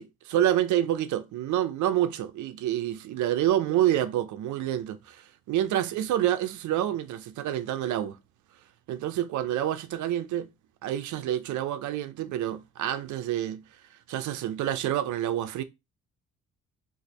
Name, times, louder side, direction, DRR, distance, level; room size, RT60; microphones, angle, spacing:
voice 1, 0.0-8.2 8.9-10.5 10.8-13.6 14.1-15.6, right 12 dB, 75° right, 0.5 m, -28 dB
2.6 x 2.6 x 4.0 m
cardioid pair, 90°, 30 cm